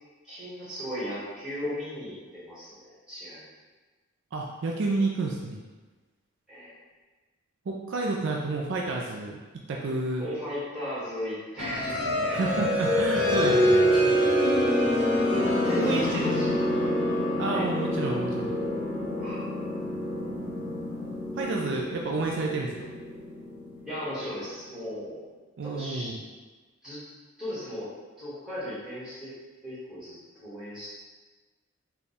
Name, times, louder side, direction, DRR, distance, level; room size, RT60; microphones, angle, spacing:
voice 1, 0.2-3.4 6.5-6.7 10.2-12.4 15.6-16.5 16.7-16.9 17.5-17.6 19.2-19.4 23.8-25.2 25.6-26.1 26.8-27.0 27.4-27.9 28.2-29.3 29.6-30.9, equal, 5° right, -11 dB, 1.4 m, -36 dB
voice 2, 4.3-5.6 7.7-9.4 9.7-10.3 12.3-13.9 15.8-16.6 17.4-18.5 21.3-22.7 25.6-26.2, right 3 dB, 55° right, -1 dB, 0.3 m, -30 dB
sound 1, 11.6-24.1, equal, 50° left, 1.3 m, -26 dB
3.5 x 2.3 x 4.0 m, 1.3 s
head